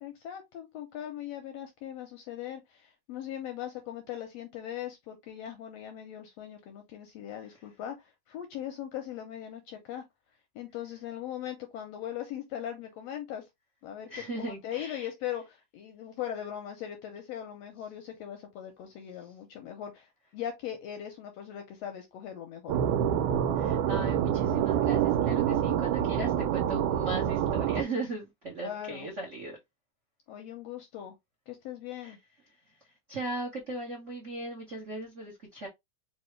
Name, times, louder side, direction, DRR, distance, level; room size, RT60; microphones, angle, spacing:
voice 1, 0.0-10.0 10.5-13.4 13.8-20.1 20.3-22.8 28.6-29.1 30.3-31.1 31.5-32.2, left 10 dB, 75° left, 1.5 m, -40 dB
voice 2, 14.1-15.1 19.2-19.3 23.6-29.6 32.0-32.2 32.5-35.7, right 2 dB, 65° right, 0.7 m, -38 dB
sound 1, 22.7-27.8, right 9 dB, 85° right, 2.1 m, -27 dB
4.6 x 2.8 x 3.1 m
omnidirectional pair, 3.6 m